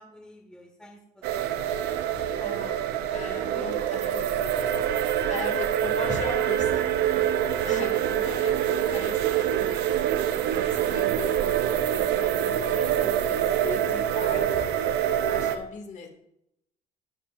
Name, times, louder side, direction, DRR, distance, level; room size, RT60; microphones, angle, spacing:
voice 1, 0.0-2.8 3.2-3.7 4.4-4.9, left 1 dB, 5° left, 3 dB, 1.5 m, -51 dB
sound 1, 1.2-15.6, right 10 dB, 85° right, 0.7 m, -25 dB
voice 2, 2.4-2.8 3.1-4.2 4.7-10.1 10.5-16.1, left 4 dB, 45° left, 4 dB, 2.2 m, -39 dB
13.0 x 9.8 x 2.5 m, 0.78 s
cardioid pair, 110°, 17 cm